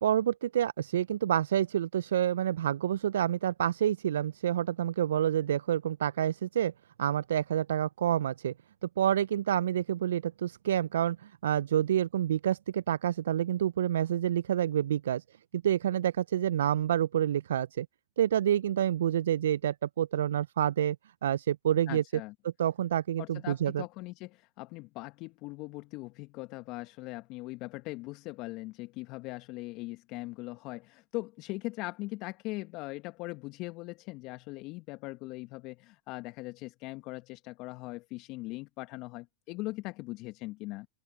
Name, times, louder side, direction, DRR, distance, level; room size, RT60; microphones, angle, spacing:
voice 1, 0.0-6.7 7.0-8.5 8.8-15.2 15.5-17.9 18.2-21.0 21.2-22.0 22.6-23.8, right 10 dB, 75° right, 0.4 m, -28 dB
voice 2, 21.9-22.3 23.2-40.9, left 21 dB, 50° left, 1.1 m, -40 dB
open air
hypercardioid pair, 100°, 0 cm